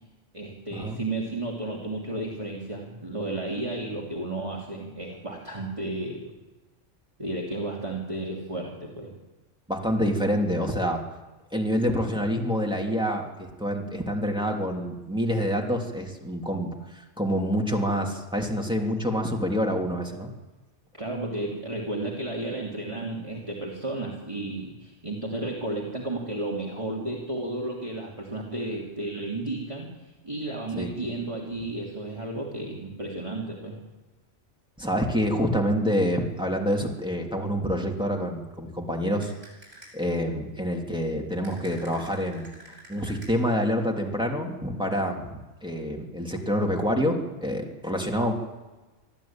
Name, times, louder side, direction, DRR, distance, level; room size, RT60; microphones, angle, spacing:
voice 1, 0.3-6.3 7.2-9.2 20.9-29.9 30.2-33.8, right 2 dB, 25° right, -3 dB, 3.0 m, -33 dB
voice 2, 9.7-11.0 11.5-20.3 30.7-30.9 34.8-39.3 39.9-42.5 42.9-48.3, equal, 5° right, 0 dB, 3.1 m, -27 dB
sound 1, 39.2-40.1 41.4-43.6, right 1 dB, 75° right, 8.5 m, -50 dB
24.5 x 14.5 x 8.9 m, 1.2 s
omnidirectional pair, 1.3 m